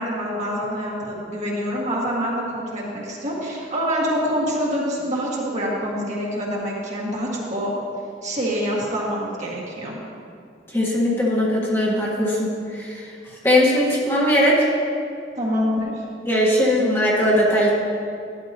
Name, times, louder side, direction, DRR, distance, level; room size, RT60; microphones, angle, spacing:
voice 1, 0.0-7.7 8.2-10.0 15.4-16.0, equal, 40° right, -5 dB, 1.9 m, -26 dB
voice 2, 10.7-13.0 13.4-14.6 16.2-17.7, equal, 15° left, -5 dB, 1.6 m, -19 dB
12.5 x 10.5 x 3.0 m, 2.4 s
head